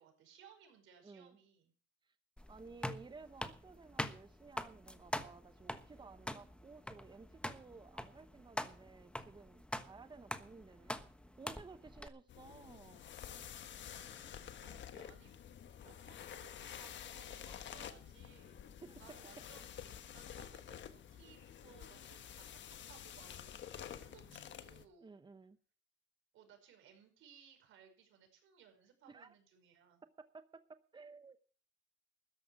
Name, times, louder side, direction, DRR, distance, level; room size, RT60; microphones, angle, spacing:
voice 1, 0.0-1.7 13.9-15.4 15.7-18.6 19.0-19.8 20.1-25.1 26.3-30.0, right 8 dB, 85° right, 5 dB, 5.2 m, -63 dB
voice 2, 1.0-1.4 2.5-11.0 11.4-13.1 18.8-19.0 25.0-25.6 29.1-29.3 30.0-31.4, right 4 dB, 25° right, 11 dB, 0.8 m, -55 dB
sound 1, 2.4-12.1, left 1 dB, 5° left, 1.3 m, -44 dB
sound 2, 12.3-24.8, left 9 dB, 65° left, 1.4 m, -50 dB
13.5 x 10.5 x 5.9 m, 0.43 s
cardioid pair, 90°, 20 cm